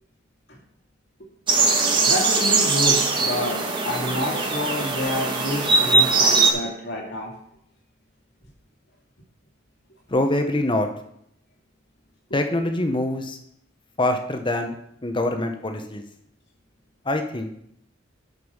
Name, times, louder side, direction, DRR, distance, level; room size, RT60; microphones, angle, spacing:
sound 1, 1.5-6.5, right 3 dB, 25° right, 1.5 m, -20 dB
voice 1, 2.0-7.3, left 1 dB, 60° left, 0 dB, 2.4 m, -28 dB
voice 2, 10.1-10.9 12.3-13.4 14.0-14.8 15.0-16.0 17.0-17.5, left 1 dB, 25° left, 6 dB, 1.0 m, -24 dB
9.6 x 5.4 x 5.6 m, 0.71 s
head